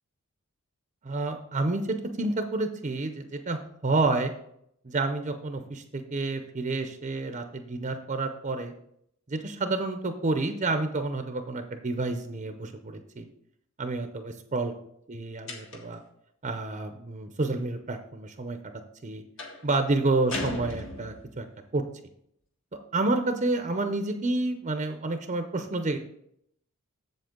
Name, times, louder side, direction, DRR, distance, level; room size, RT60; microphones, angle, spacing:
voice 1, 1.0-4.3 4.8-8.7 9.3-13.3 13.8-14.7 15.1-16.0 16.4-18.6 19.0-19.2 19.6-21.5 21.7-21.8 22.9-26.0, right 2 dB, 35° right, 7 dB, 0.6 m, -29 dB
sound 1, 15.5-16.1 19.4-19.7 20.3-21.4, left 2 dB, 60° left, 1.5 m, -36 dB
7.8 x 7.4 x 3.7 m, 0.72 s
head